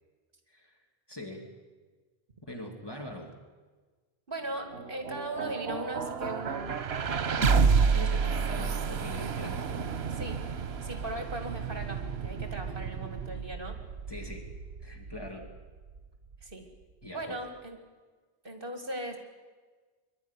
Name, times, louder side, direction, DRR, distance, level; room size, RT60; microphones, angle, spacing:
voice 1, 1.1-1.5 2.4-3.3 7.4-9.6 14.1-14.5 14.8-15.5 17.0-17.4, left 1 dB, 25° left, 1 dB, 2.7 m, -42 dB
voice 2, 4.3-6.8 10.1-10.4 10.8-13.8 16.4-16.7 17.1-17.8 18.4-19.2, right 1 dB, 60° right, 5 dB, 2.5 m, -38 dB
sound 1, 4.4-16.5, right 5 dB, 85° right, 1.2 m, -30 dB
sound 2, 7.0-8.0, right 2 dB, 25° right, 3.8 m, -48 dB
23.0 x 12.0 x 9.9 m, 1.4 s
omnidirectional pair, 1.0 m